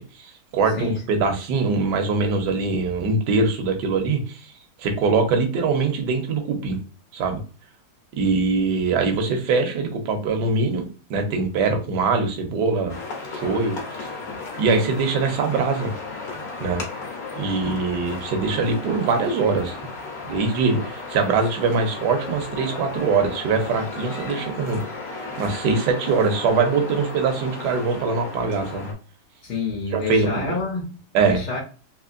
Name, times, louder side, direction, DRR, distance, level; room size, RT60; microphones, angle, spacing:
voice 1, 0.0-4.4 4.8-6.8 7.1-7.4 8.2-10.8 11.1-13.0 13.3-14.1 14.6-15.9 16.6-16.8 17.4-19.8 20.2-24.8 25.4-28.9 29.9-30.5 31.1-31.4, right 4 dB, 80° right, 4 dB, 1.3 m, -22 dB
sound 1, 12.9-28.9, left 3 dB, 65° left, 1.4 m, -35 dB
voice 2, 29.4-30.9 31.2-31.6, left 4 dB, 80° left, -1 dB, 1.4 m, -27 dB
3.6 x 2.8 x 2.4 m, 0.36 s
omnidirectional pair, 1.8 m